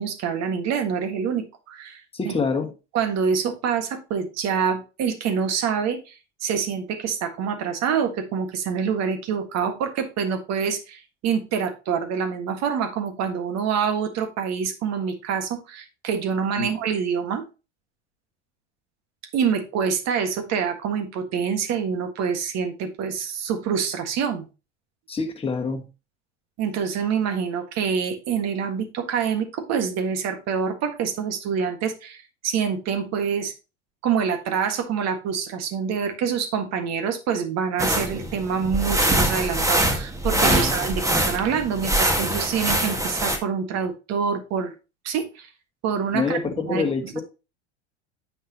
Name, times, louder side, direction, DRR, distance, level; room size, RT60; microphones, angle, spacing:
voice 1, 0.0-2.4 2.9-17.4 19.3-24.5 26.6-33.5 34.0-44.7 45.0-45.5 45.8-46.4 46.7-46.9, right 7 dB, 50° right, 1.6 m, -26 dB
voice 2, 2.1-2.7 16.6-16.7 25.1-25.8 40.4-40.7 46.1-47.2, left 4 dB, 15° left, 1.6 m, -26 dB
sound 1, 37.8-43.4, right 1 dB, 10° right, 1.6 m, -23 dB
9.4 x 6.0 x 2.8 m
hypercardioid pair, 80°, 34 cm